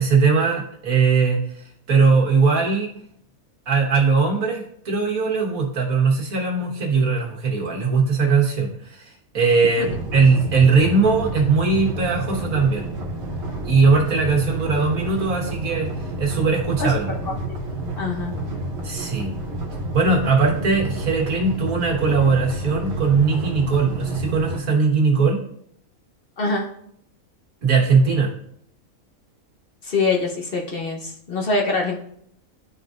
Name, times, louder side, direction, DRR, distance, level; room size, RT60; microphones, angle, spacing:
voice 1, 0.0-2.9 3.7-12.9 13.6-15.9 16.2-17.1 18.8-19.3 19.9-25.4 27.6-28.3, right 4 dB, 75° right, -2 dB, 1.9 m, -20 dB
sound 1, 9.8-24.6, right 1 dB, 55° right, 1.2 m, -30 dB
voice 2, 18.0-18.3 26.4-26.7 29.8-32.0, left 3 dB, 45° left, 0 dB, 0.9 m, -24 dB
11.5 x 3.8 x 2.5 m, 0.68 s
omnidirectional pair, 1.5 m